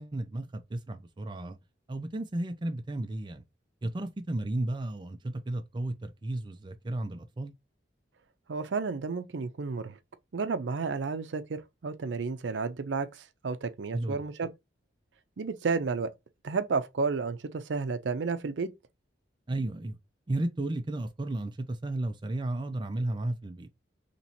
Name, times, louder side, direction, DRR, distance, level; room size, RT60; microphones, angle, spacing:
voice 1, 0.0-1.6 1.9-3.4 3.8-7.5 13.9-14.2 19.5-20.0 20.3-23.7, right 1 dB, 25° right, 0.4 m, -33 dB
voice 2, 8.5-10.0 10.3-14.5 15.4-16.1 16.4-18.7, right 4 dB, 80° right, 0.5 m, -32 dB
3.0 x 2.8 x 4.0 m
head